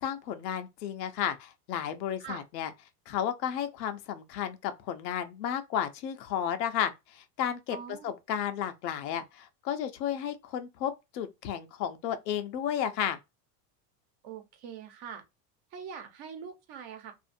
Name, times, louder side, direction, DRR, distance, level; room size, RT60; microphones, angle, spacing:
voice 1, 0.0-2.7 3.1-7.8 8.0-13.2, left 9 dB, 85° left, 0.8 m, -33 dB
voice 2, 7.7-8.1 14.2-15.2 15.7-17.1, right 7 dB, 50° right, 1.0 m, -43 dB
2.6 x 2.5 x 2.5 m
supercardioid pair, 110°, 49 cm